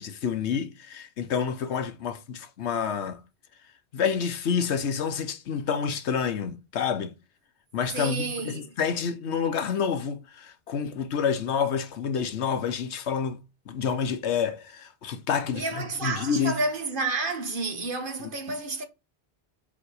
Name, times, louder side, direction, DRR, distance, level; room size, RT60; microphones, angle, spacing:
voice 1, 0.0-3.2 3.9-7.1 7.7-13.4 13.7-16.6, left 7 dB, 85° left, 1.1 m, -28 dB
voice 2, 7.9-8.7 15.5-18.8, right 3 dB, 50° right, 1.4 m, -30 dB
5.5 x 4.9 x 4.9 m
omnidirectional pair, 1.1 m